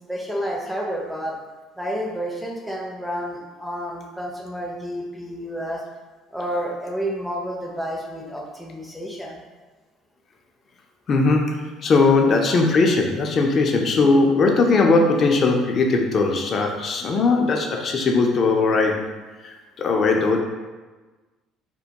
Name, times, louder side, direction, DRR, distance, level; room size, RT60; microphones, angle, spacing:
voice 1, 0.1-1.4 1.8-5.8 6.3-9.4, equal, 5° right, -1 dB, 0.5 m, -30 dB
voice 2, 11.1-19.0 19.4-20.4, left 3 dB, 45° left, 2 dB, 0.4 m, -19 dB
2.2 x 2.1 x 2.8 m, 1.3 s
supercardioid pair, 75°, 0 cm